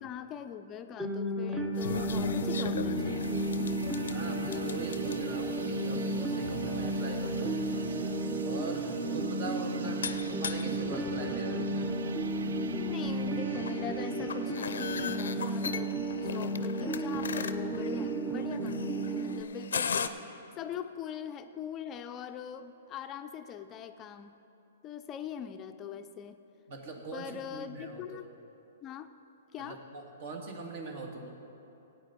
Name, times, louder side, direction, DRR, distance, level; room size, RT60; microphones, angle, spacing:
voice 1, 0.0-3.7 12.7-20.2 20.6-24.4 24.8-26.4 26.9-28.3 28.8-29.1 29.5-29.8, left 8 dB, 25° left, 9 dB, 0.4 m, -42 dB
sound 1, 1.0-19.4, right 1 dB, 10° right, 0.9 m, -33 dB
sound 2, 1.7-20.1, left 6 dB, 80° left, 0.5 m, -40 dB
voice 2, 1.9-2.3 4.1-7.7 8.4-11.8 26.7-28.2 29.6-31.4, right 3 dB, 55° right, 2 dB, 1.9 m, -42 dB
sound 3, 3.0-16.7, right 7 dB, 75° right, 0.5 m, -47 dB
16.0 x 8.8 x 4.2 m, 2.9 s
hypercardioid pair, 130°, 0 cm